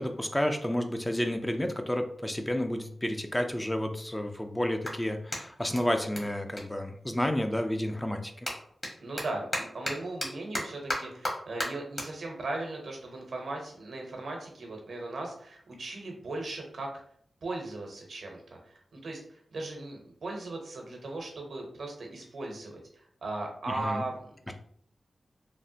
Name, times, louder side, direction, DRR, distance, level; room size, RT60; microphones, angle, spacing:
voice 1, 0.0-8.3 23.7-24.0 24.5-24.6, left 1 dB, 15° left, 5 dB, 0.4 m, -30 dB
Clapping, 4.8-7.5 7.8-14.5, equal, 35° left, 1.1 m, -38 dB
voice 2, 9.0-16.9 17.4-19.2 19.5-24.5, right 2 dB, 80° right, 1 dB, 0.7 m, -38 dB
3.2 x 2.0 x 2.7 m, 0.63 s
cardioid pair, 50°, 0 cm